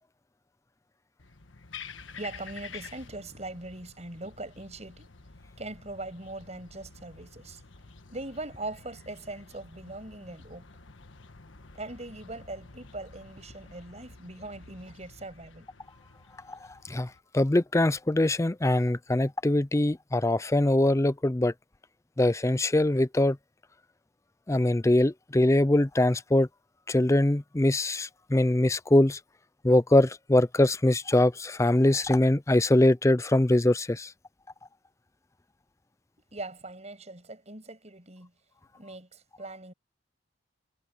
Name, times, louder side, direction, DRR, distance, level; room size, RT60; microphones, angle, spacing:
sound 1, 1.2-17.2, left 4 dB, 80° left, 1.5 m, -50 dB
voice 1, 2.2-5.1 5.6-7.6 8.1-10.7 11.6-15.7 36.3-38.3 38.7-39.7, right 2 dB, 35° right, 7.1 m, -41 dB
voice 2, 16.5-21.5 22.2-23.4 24.5-26.5 26.9-29.2 29.6-34.1, left 1 dB, 15° left, 0.5 m, -23 dB
head